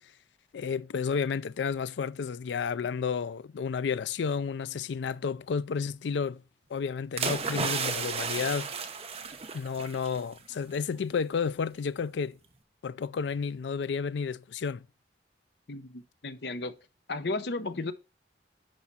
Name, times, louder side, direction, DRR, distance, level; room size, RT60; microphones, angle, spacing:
voice 1, 0.5-6.4 6.7-8.7 9.5-12.4 12.8-14.9, left 6 dB, 85° left, 0.4 m, -31 dB
sound 1, 7.2-10.2 10.5-10.8, right 5 dB, 35° right, 1.0 m, -33 dB
voice 2, 15.7-16.8 17.1-17.9, left 3 dB, 70° left, 0.8 m, -34 dB
10.5 x 4.8 x 4.2 m
head